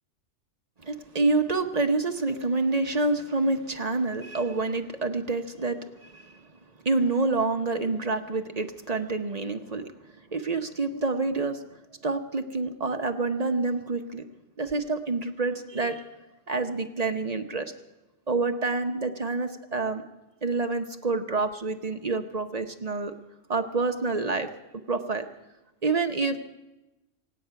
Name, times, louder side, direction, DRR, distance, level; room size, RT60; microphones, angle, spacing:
voice 1, 0.8-6.4 6.8-9.8 10.3-11.6 12.0-14.2 14.6-16.0 16.5-17.7 18.3-20.0 20.4-23.1 23.5-24.5 24.9-25.3 25.8-26.4, right 3 dB, 35° right, 6 dB, 0.9 m, -27 dB
25.0 x 9.0 x 5.8 m, 1.0 s
omnidirectional pair, 1.3 m